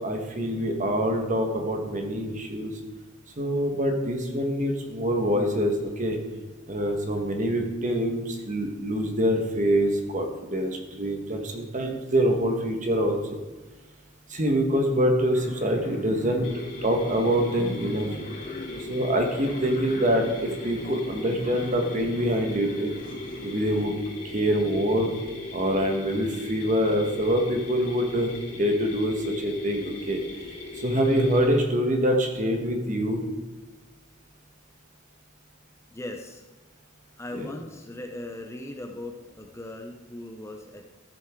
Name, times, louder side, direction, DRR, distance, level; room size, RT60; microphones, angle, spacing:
voice 1, 0.0-2.7 3.4-6.2 6.7-13.4 14.3-18.1 18.8-22.9 23.4-24.0 24.2-25.1 25.5-28.3 28.6-30.2 30.7-33.3 37.3-37.5, equal, 35° right, 3 dB, 1.4 m, -25 dB
sound 1, 15.3-23.8, left 1 dB, 40° left, 0.9 m, -41 dB
Mechanisms, 16.4-31.5, left 2 dB, 75° left, 3.7 m, -39 dB
voice 2, 35.9-36.4 37.2-40.9, left 1 dB, 15° left, 4 dB, 0.6 m, -38 dB
13.5 x 7.7 x 3.7 m, 1.2 s
head